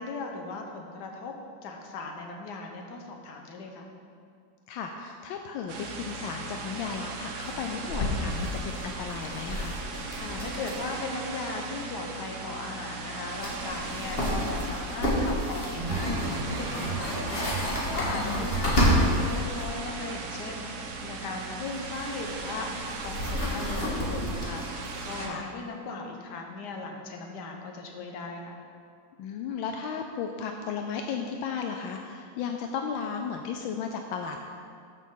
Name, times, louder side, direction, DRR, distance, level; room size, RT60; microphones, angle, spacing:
voice 1, 0.0-1.3 1.6-3.9 10.1-22.7 23.0-28.6, left 3 dB, 60° left, 2 dB, 1.5 m, -38 dB
voice 2, 4.7-9.8 18.0-18.5 25.2-25.5 29.2-34.4, left 6 dB, 80° left, 3 dB, 1.3 m, -35 dB
sound 1, 5.7-25.3, right 3 dB, 60° right, 1.3 m, -38 dB
sound 2, 6.1-6.2 6.4-6.5 6.8-7.0 7.4-11.0 11.2-11.3 13.0-13.1 13.3-19.7 21.6-25.2, equal, 30° left, 1.7 m, -30 dB
sound 3, 15.8-19.0 19.5-20.0 20.3-20.5 20.9-21.2 21.8-22.0, right 3 dB, 85° right, 1.9 m, -36 dB
13.0 x 6.4 x 3.8 m, 2.3 s
omnidirectional pair, 2.1 m